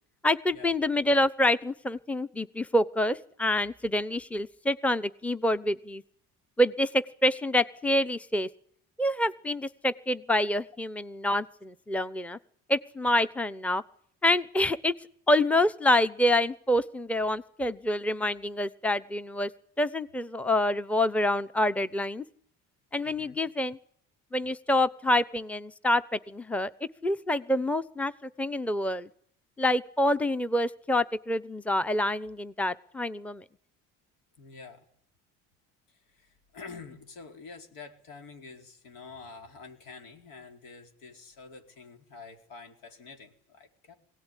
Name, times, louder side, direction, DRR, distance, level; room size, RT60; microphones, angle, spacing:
voice 1, 0.2-6.0 6.6-8.5 9.0-12.4 12.7-13.8 14.2-14.9 15.3-19.5 19.8-22.2 22.9-23.8 24.3-26.7 27.0-29.1 29.6-33.4, left 1 dB, 5° left, 14 dB, 0.9 m, -27 dB
voice 2, 23.0-23.4 34.4-34.9 35.9-44.0, left 4 dB, 85° left, 5 dB, 4.4 m, -47 dB
22.5 x 18.0 x 10.0 m, 0.65 s
cardioid pair, 95°, 32 cm